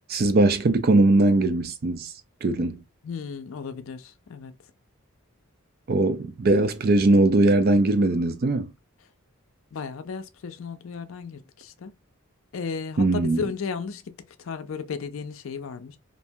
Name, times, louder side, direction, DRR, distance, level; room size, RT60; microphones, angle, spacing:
voice 1, 0.1-2.1 2.4-2.8 5.9-8.7 13.0-13.4, right 2 dB, 45° right, 0.4 m, -20 dB
voice 2, 3.0-4.5 9.7-11.9 12.5-14.1 14.4-16.0, left 5 dB, 70° left, 0.4 m, -34 dB
2.6 x 2.1 x 2.7 m
head